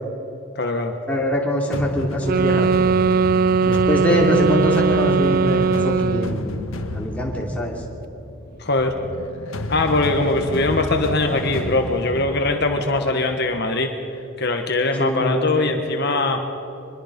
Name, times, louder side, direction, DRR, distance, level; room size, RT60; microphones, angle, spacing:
voice 1, 0.5-0.9 8.6-9.0 9.7-13.9 14.4-16.4, left 2 dB, 50° left, 4 dB, 1.4 m, -21 dB
voice 2, 1.1-2.7 3.6-7.8 15.0-15.7, left 1 dB, 5° left, -2 dB, 2.9 m, -23 dB
sound 1, 1.7-13.6, left 1 dB, 80° left, 1.5 m, -31 dB
sound 2, 2.2-6.4, right 5 dB, 45° right, 0.4 m, -19 dB
25.0 x 21.5 x 5.4 m, 3.0 s
head